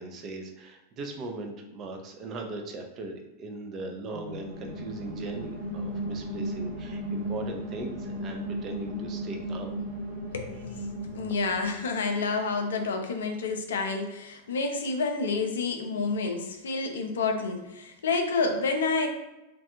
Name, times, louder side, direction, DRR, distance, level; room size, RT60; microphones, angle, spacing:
voice 1, 0.0-9.8, right 2 dB, 35° right, 3 dB, 0.4 m, -39 dB
sound 1, 4.1-11.9, right 1 dB, 80° right, 0.9 m, -35 dB
voice 2, 10.3-10.7 11.1-19.1, left 4 dB, 65° left, 4 dB, 0.4 m, -29 dB
2.4 x 2.2 x 2.8 m, 0.96 s
figure-of-eight pair, 90°, 0 cm